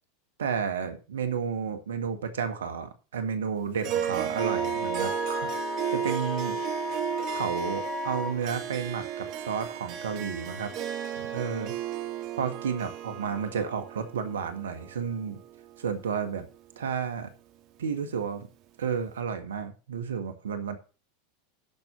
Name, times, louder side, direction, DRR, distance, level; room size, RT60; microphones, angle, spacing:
voice 1, 0.4-5.5 5.9-6.6 7.3-10.7 11.2-11.7 12.4-15.4 15.8-16.4 16.8-17.3 17.8-18.5 18.8-20.7, right 6 dB, 85° right, 9 dB, 1.6 m, -32 dB
Harp, 3.8-16.4, right 10 dB, 50° right, 1.8 m, -34 dB
Wind instrument woodwind instrument, 4.4-8.4, left 4 dB, 25° left, 2.1 m, -35 dB
12.5 x 4.6 x 6.7 m, 0.35 s
hypercardioid pair, 95°, 0 cm